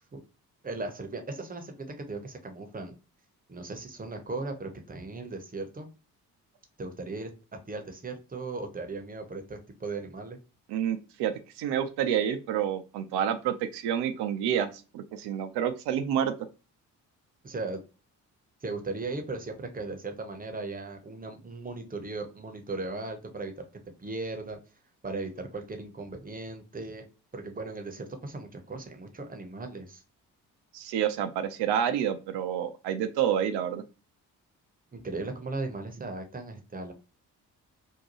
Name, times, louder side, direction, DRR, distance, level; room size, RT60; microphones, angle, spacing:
voice 1, 0.6-2.9 3.5-5.9 6.8-7.3 7.7-10.4 17.4-17.8 18.6-23.5 24.0-24.6 25.0-27.1 27.3-30.0 34.9-36.9, right 3 dB, 20° right, 5 dB, 0.8 m, -37 dB
voice 2, 10.7-16.3 30.7-33.8, right 9 dB, 65° right, 9 dB, 0.5 m, -29 dB
2.7 x 2.2 x 2.9 m, 0.32 s
hypercardioid pair, 40°, 45 cm